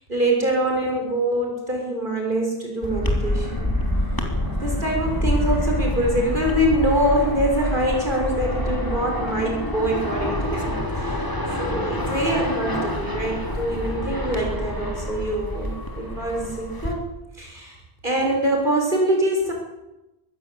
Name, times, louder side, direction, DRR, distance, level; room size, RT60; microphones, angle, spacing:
voice 1, 0.1-3.7 4.6-11.2 11.6-17.7 18.0-19.5, right 1 dB, 50° right, 0 dB, 6.7 m, -24 dB
sound 1, 2.8-16.9, left 1 dB, 20° left, 3.3 m, -26 dB
23.0 x 16.0 x 8.7 m, 0.96 s
omnidirectional pair, 1.1 m